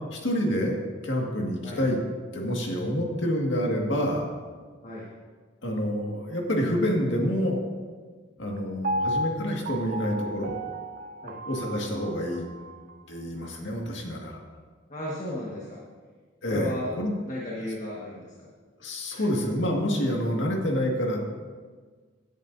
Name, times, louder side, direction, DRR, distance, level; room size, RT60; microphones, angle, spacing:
voice 1, 0.1-0.7 1.0-2.0 2.3-4.3 5.6-7.6 8.4-10.5 11.5-12.4 13.1-14.4 16.4-17.1 18.8-21.2, equal, 70° left, 0 dB, 1.9 m, -27 dB
Piano, 8.8-12.9 13.4-13.5, right 1 dB, 45° right, 0.4 m, -33 dB
voice 2, 14.9-15.8 16.5-16.9 17.2-18.5 19.1-19.2, left 1 dB, 40° left, -5 dB, 1.6 m, -34 dB
17.0 x 10.0 x 2.7 m, 1.5 s
head